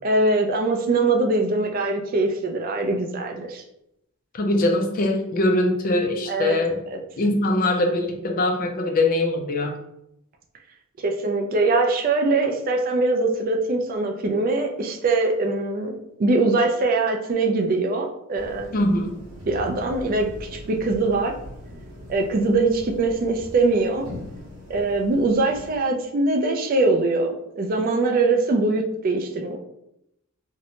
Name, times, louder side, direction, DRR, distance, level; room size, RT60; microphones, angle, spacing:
voice 1, 0.0-3.6 6.3-6.6 6.9-7.0 11.0-18.7 19.5-21.3 22.1-24.1 24.7-29.6, right 3 dB, 40° right, 3 dB, 0.3 m, -22 dB
voice 2, 4.3-6.8 7.2-9.7 18.7-19.1, left 2 dB, 40° left, 3 dB, 0.3 m, -22 dB
sound 1, 18.3-25.8, left 1 dB, 80° right, 0.8 m, -41 dB
2.6 x 2.1 x 2.8 m, 0.80 s
head